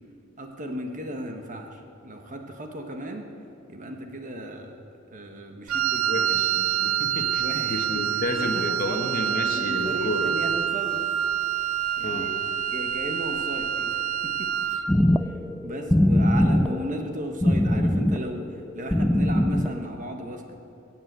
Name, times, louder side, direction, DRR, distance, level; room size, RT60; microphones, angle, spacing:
voice 1, 0.4-3.3 3.7-4.8 5.1-6.3 7.4-8.0 8.4-11.0 12.0-12.3 12.7-14.5 15.3-20.6, right 1 dB, 40° right, 4 dB, 1.3 m, -35 dB
Wind instrument woodwind instrument, 5.7-14.9, right 10 dB, 85° right, 0.7 m, -27 dB
voice 2, 6.0-10.3 12.0-12.3, left 1 dB, 45° left, 3 dB, 1.3 m, -31 dB
sound 1, 14.9-19.9, left 1 dB, 5° left, 0.4 m, -22 dB
21.5 x 7.6 x 8.1 m, 2.7 s
head